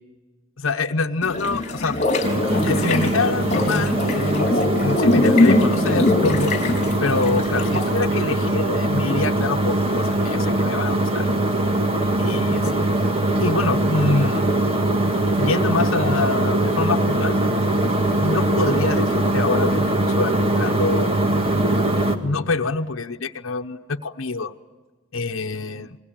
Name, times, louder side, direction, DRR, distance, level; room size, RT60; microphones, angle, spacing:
voice 1, 0.6-2.0 2.6-6.5 7.0-11.3 12.2-12.8 13.4-14.6 15.4-17.4 18.2-21.1 22.2-24.5 25.1-26.0, left 3 dB, 85° left, 4 dB, 0.9 m, -26 dB
sound 1, 1.2-8.0, left 2 dB, 35° left, 4.3 m, -21 dB
sound 2, 2.2-22.2, right 1 dB, 30° right, 1.9 m, -21 dB
27.5 x 21.0 x 8.9 m, 1.3 s
head